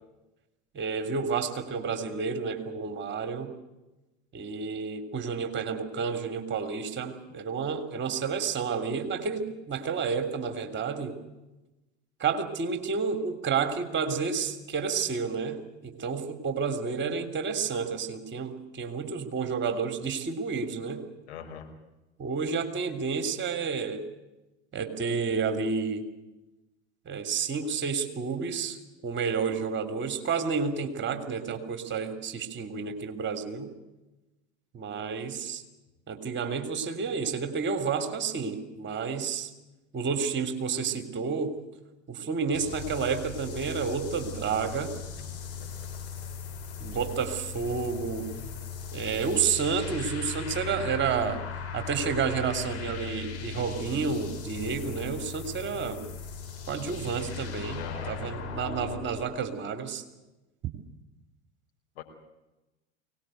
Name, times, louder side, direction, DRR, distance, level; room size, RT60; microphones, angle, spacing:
voice 1, 0.7-3.5 4.3-11.2 12.2-21.0 22.2-24.0 24.7-26.1 27.0-33.7 34.7-35.6 36.1-39.5 39.9-41.6 42.1-44.9 46.8-48.3 48.9-51.4 51.7-56.0 56.7-60.0, right 5 dB, 35° right, 8 dB, 3.5 m, -30 dB
voice 2, 21.3-21.7 45.2-45.3 57.7-58.2 62.0-62.1, left 7 dB, 70° left, 3 dB, 5.5 m, -41 dB
sound 1, 42.5-59.3, left 6 dB, 45° left, 5.9 m, -38 dB
23.5 x 19.5 x 8.0 m, 1.0 s
hypercardioid pair, 85°, 34 cm